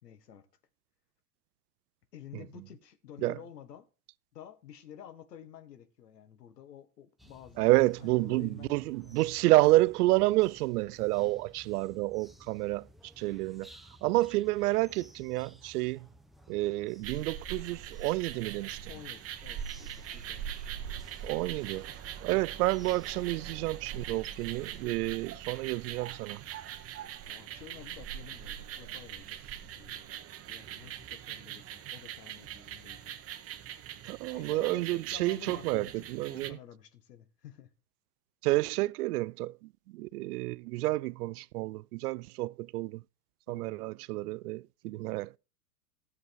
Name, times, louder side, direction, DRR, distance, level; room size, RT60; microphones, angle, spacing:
voice 1, 0.0-0.5 2.1-3.9 4.3-9.3 11.1-11.4 18.9-20.7 27.3-29.4 29.8-30.2 30.5-33.2 34.3-34.8 35.1-37.7 43.5-43.8, left 9 dB, 90° left, 1.6 m, -51 dB
sound 1, 7.2-24.9, equal, ahead, 0.7 m, -57 dB
voice 2, 7.6-12.9 13.2-13.7 14.0-16.1 16.5-18.8 21.2-21.9 22.2-26.4 34.1-36.6 38.4-43.0 43.5-45.4, right 19 dB, 70° right, 0.5 m, -29 dB
sound 2, 17.0-36.5, right 10 dB, 30° right, 1.0 m, -42 dB
13.5 x 7.1 x 4.5 m
hypercardioid pair, 115°, 47 cm